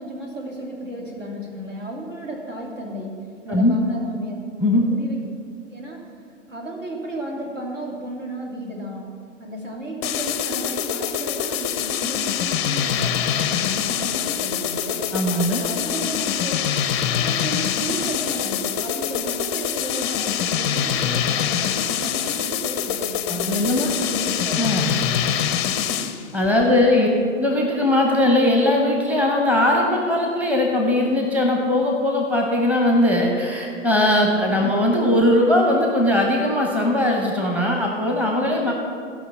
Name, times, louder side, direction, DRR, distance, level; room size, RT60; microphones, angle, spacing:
voice 1, 0.0-4.3 4.9-5.2 5.7-6.1 6.5-9.1 9.4-15.1 15.5-16.6 17.1-23.2 23.9-24.6 26.6-27.0 34.5-34.6, right 1 dB, 75° right, -1 dB, 2.7 m, -34 dB
sound 1, 10.0-26.2, left 9 dB, 20° left, 0.5 m, -24 dB
voice 2, 15.1-15.6 23.3-24.0 24.6-25.0 26.3-27.1 27.3-38.7, left 1 dB, 5° right, 0 dB, 0.8 m, -19 dB
14.0 x 5.6 x 5.9 m, 2.2 s
figure-of-eight pair, 120°, 38 cm